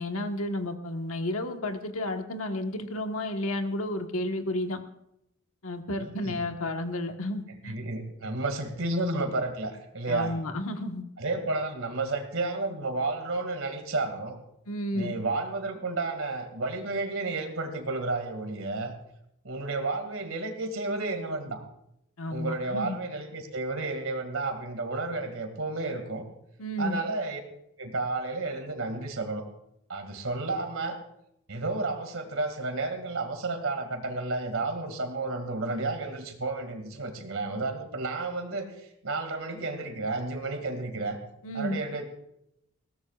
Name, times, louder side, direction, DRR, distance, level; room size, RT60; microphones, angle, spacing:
voice 1, 0.0-4.8 5.6-7.7 10.1-11.0 14.7-15.1 22.2-23.0 26.6-27.0 41.4-41.8, left 1 dB, 80° left, 5 dB, 1.4 m, -32 dB
voice 2, 6.0-6.4 7.6-10.4 11.2-14.4 14.9-18.9 19.4-21.6 22.3-26.3 26.8-27.4 27.8-29.4 29.9-31.0 31.5-41.2 41.5-42.1, right 2 dB, 70° right, 6 dB, 2.2 m, -32 dB
20.5 x 17.0 x 2.4 m, 0.80 s
head